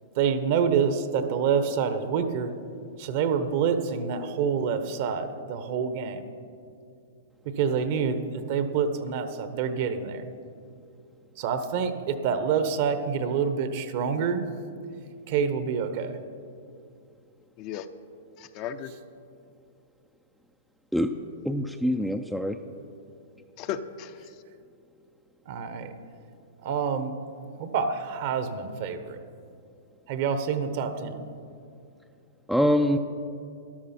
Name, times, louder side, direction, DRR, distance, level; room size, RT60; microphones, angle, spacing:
voice 1, 0.1-2.5 3.0-6.3 7.4-10.3 11.4-14.4 15.3-16.2 25.5-25.9 26.6-27.1 27.6-29.2 30.1-31.2, right 6 dB, 50° right, 10 dB, 1.0 m, -27 dB
voice 2, 18.4-18.9 23.6-24.3, left 9 dB, 40° left, 9 dB, 0.7 m, -35 dB
voice 3, 21.4-22.6 32.5-33.0, equal, ahead, 4 dB, 0.5 m, -24 dB
13.5 x 12.0 x 4.4 m, 2.5 s
hypercardioid pair, 115°, 0 cm